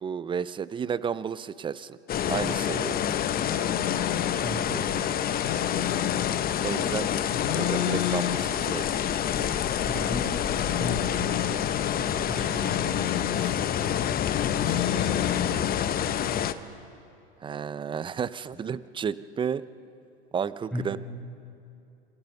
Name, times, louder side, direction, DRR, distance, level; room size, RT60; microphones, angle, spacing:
voice 1, 0.0-2.0 2.3-3.0 4.7-4.8 6.6-7.1 7.5-9.1 13.3-13.6 14.0-14.1 14.7-15.3 17.4-19.6 20.3-21.0, right 7 dB, 15° right, 17 dB, 0.4 m, -32 dB
sound 1, 2.1-16.5, left 9 dB, 30° left, 0.8 m, -27 dB
sound 2, 3.1-16.1, left 12 dB, 75° left, 1.5 m, -35 dB
voice 2, 4.4-5.0 9.2-11.7 12.0-13.0 20.7-21.0, equal, 5° left, -2 dB, 6.8 m, -37 dB
26.0 x 16.5 x 6.9 m, 2.6 s
hypercardioid pair, 105°, 33 cm